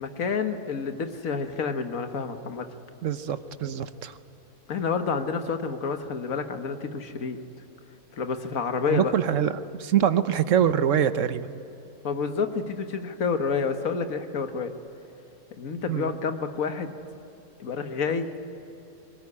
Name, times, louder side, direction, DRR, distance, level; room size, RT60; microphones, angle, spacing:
voice 1, 0.0-2.7 4.7-7.4 8.2-9.1 12.0-14.7 15.6-17.0 17.6-18.3, left 5 dB, 65° left, 7 dB, 1.8 m, -29 dB
voice 2, 3.0-4.1 8.9-9.5 9.8-11.5 15.9-16.1, right 9 dB, 60° right, 12 dB, 1.2 m, -24 dB
25.0 x 18.5 x 9.8 m, 3.0 s
omnidirectional pair, 1.6 m